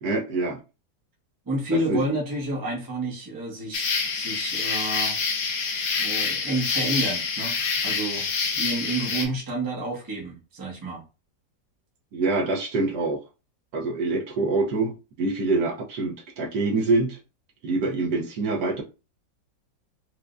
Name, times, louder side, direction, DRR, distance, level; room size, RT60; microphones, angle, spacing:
voice 1, 0.0-0.6 1.7-2.0 12.1-13.2 13.7-17.2 17.6-18.8, right 3 dB, 70° right, 1.3 m, -25 dB
voice 2, 1.5-5.2 6.0-8.3 8.5-11.0, right 1 dB, 20° right, 0.6 m, -30 dB
sound 1, 3.7-9.3, left 5 dB, 80° left, 1.4 m, -27 dB
4.6 x 2.1 x 2.5 m
omnidirectional pair, 2.0 m